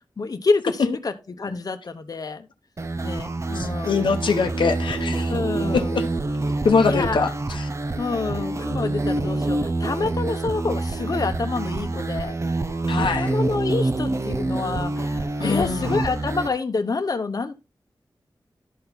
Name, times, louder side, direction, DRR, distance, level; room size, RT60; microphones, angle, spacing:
voice 1, 0.2-2.5 3.0-4.1 5.3-6.0 6.9-7.2 8.0-12.4 12.9-17.5, left 4 dB, 50° left, 0.9 m, -27 dB
sound 1, 2.8-16.5, right 2 dB, 40° right, 0.7 m, -26 dB
voice 2, 3.5-5.4 5.7-6.0 6.6-7.7 12.9-13.3 15.4-16.0, left 5 dB, 85° left, 0.9 m, -23 dB
12.0 x 4.4 x 4.0 m
wide cardioid pair, 95°, 8 cm